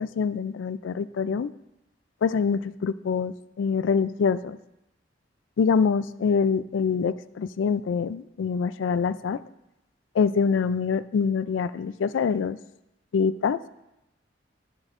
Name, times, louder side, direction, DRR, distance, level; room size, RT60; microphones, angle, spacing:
voice 1, 0.0-1.5 2.2-4.6 5.6-9.4 10.1-12.6 13.1-13.6, left 6 dB, 80° left, 15 dB, 0.3 m, -25 dB
13.0 x 6.2 x 2.5 m, 0.90 s
head